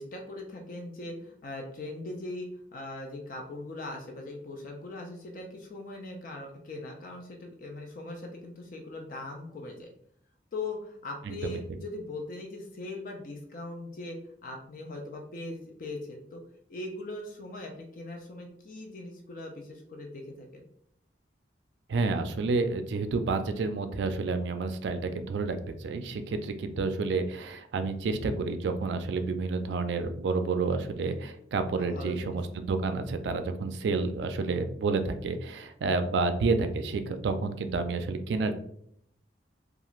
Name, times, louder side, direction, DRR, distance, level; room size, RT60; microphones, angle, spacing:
voice 1, 0.0-9.9 10.5-16.4 16.7-20.6 31.8-32.4, left 2 dB, 50° left, 2 dB, 0.4 m, -40 dB
voice 2, 11.3-11.6 21.9-38.6, right 3 dB, 70° right, 9 dB, 0.3 m, -30 dB
2.4 x 2.4 x 3.0 m, 0.68 s
head